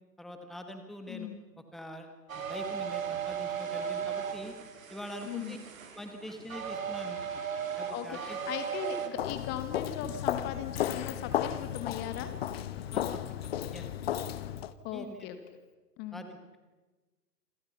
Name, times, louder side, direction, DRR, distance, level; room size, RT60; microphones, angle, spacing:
voice 1, 0.2-1.3 1.7-4.5 4.9-5.6 5.9-7.2 7.8-8.4 12.9-13.2 13.7-13.9 14.9-15.3 16.1-16.6, equal, ahead, 6 dB, 1.6 m, -44 dB
voice 2, 1.1-1.4 5.2-5.6 7.9-12.3 14.8-15.4 16.0-16.2, left 10 dB, 20° left, 9 dB, 1.6 m, -38 dB
sound 1, 2.3-9.1, right 7 dB, 55° right, 3.6 m, -36 dB
Walk footsteps, 9.2-14.7, left 10 dB, 40° left, 1.2 m, -34 dB
28.0 x 26.0 x 5.6 m, 1.2 s
figure-of-eight pair, 120°, 47 cm